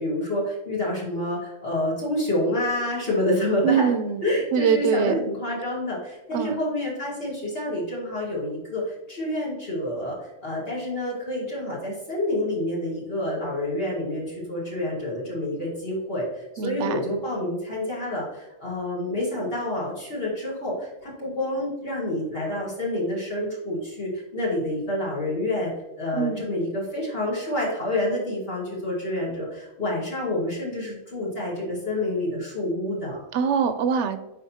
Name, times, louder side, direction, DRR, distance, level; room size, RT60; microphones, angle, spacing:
voice 1, 0.0-3.9 4.2-25.7 26.0-33.2, left 1 dB, 50° left, -5 dB, 1.9 m, -28 dB
voice 2, 3.6-4.2 4.5-5.1 6.3-6.6 16.6-17.0 26.2-26.4 33.3-34.2, right 7 dB, 70° right, 10 dB, 0.9 m, -23 dB
10.0 x 3.9 x 2.8 m, 1.0 s
omnidirectional pair, 1.3 m